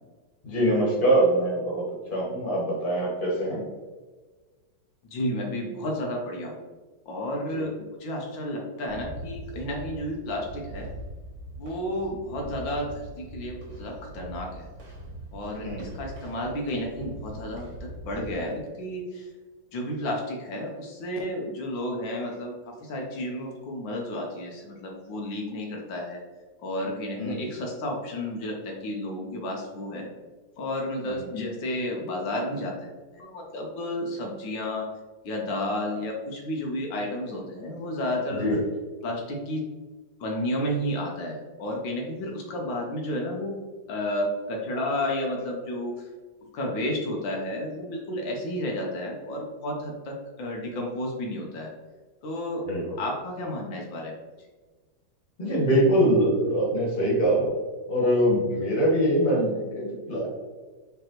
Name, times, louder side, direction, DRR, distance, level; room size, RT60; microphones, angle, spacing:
voice 1, 0.4-1.8 2.1-3.6 7.5-7.7 15.6-15.9 27.2-27.4 31.0-31.3 38.4-38.6 52.6-53.0 55.4-57.5 57.9-60.3, right 1 dB, 30° left, -4 dB, 1.5 m, -23 dB
voice 2, 5.1-6.5 7.1-7.7 8.0-10.9 11.6-14.7 15.3-19.3 19.7-26.2 26.6-30.1 30.6-34.9 35.2-38.6 39.0-39.6 40.2-43.5 43.9-46.1 46.5-51.7 52.2-52.7 53.0-54.1, left 1 dB, 80° left, 0 dB, 1.5 m, -32 dB
sound 1, 8.9-18.3, right 1 dB, 90° right, 2.1 m, -41 dB
5.1 x 3.4 x 3.0 m, 1.3 s
omnidirectional pair, 2.0 m